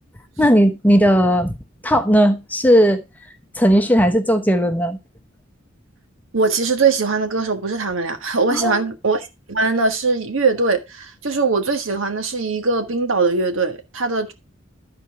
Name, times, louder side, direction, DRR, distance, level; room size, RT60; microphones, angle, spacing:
voice 1, 0.4-1.5 1.8-3.0 3.6-5.0 8.5-8.8, equal, 10° left, 1.0 m, -16 dB
voice 2, 6.3-14.3, right 4 dB, 85° right, 1.5 m, -21 dB
13.0 x 4.4 x 4.7 m
head